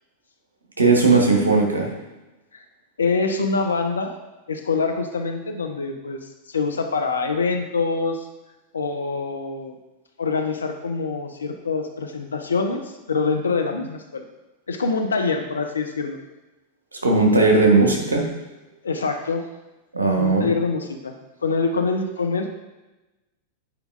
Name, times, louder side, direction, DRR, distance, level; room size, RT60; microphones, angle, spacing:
voice 1, 0.8-1.9 17.0-18.2 19.9-20.5, right 3 dB, 75° right, 0 dB, 1.1 m, -17 dB
voice 2, 3.0-4.1 4.5-8.3 8.7-9.7 10.2-14.3 14.7-16.2 18.8-19.5 20.1-21.2 21.4-22.5, left 4 dB, 75° left, 5 dB, 0.6 m, -25 dB
8.4 x 4.6 x 2.5 m, 1.1 s
figure-of-eight pair, 90°, 0 cm